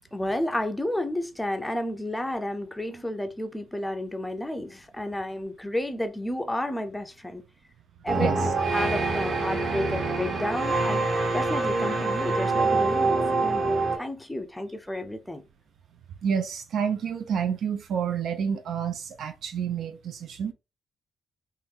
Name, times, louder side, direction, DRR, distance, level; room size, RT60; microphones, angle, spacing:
voice 1, 0.1-7.4 8.0-11.0 11.3-13.7 14.0-15.4, left 1 dB, 5° left, 0.5 m, -31 dB
sound 1, 8.1-14.0, right 3 dB, 45° right, 1.1 m, -25 dB
voice 2, 16.2-20.5, right 7 dB, 65° right, 0.5 m, -29 dB
3.7 x 3.1 x 2.8 m
wide cardioid pair, 160°, 0 cm